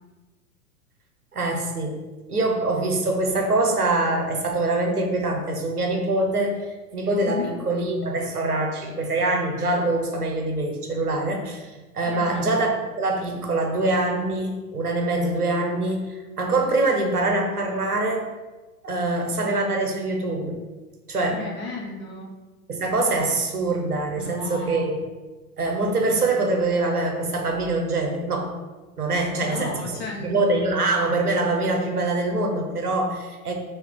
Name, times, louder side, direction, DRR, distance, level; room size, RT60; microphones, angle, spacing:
voice 1, 1.3-2.0 2.3-6.6 6.9-12.7 13.0-18.3 18.8-20.6 21.1-21.4 22.7-24.9 25.6-28.5 29.0-29.8 30.2-33.5, right 2 dB, 90° right, 2 dB, 0.8 m, -24 dB
voice 2, 12.1-12.5 21.3-22.3 24.2-24.9 29.4-30.4, left 2 dB, 25° left, -2 dB, 1.0 m, -34 dB
4.6 x 2.8 x 3.6 m, 1.2 s
figure-of-eight pair, 95°, 44 cm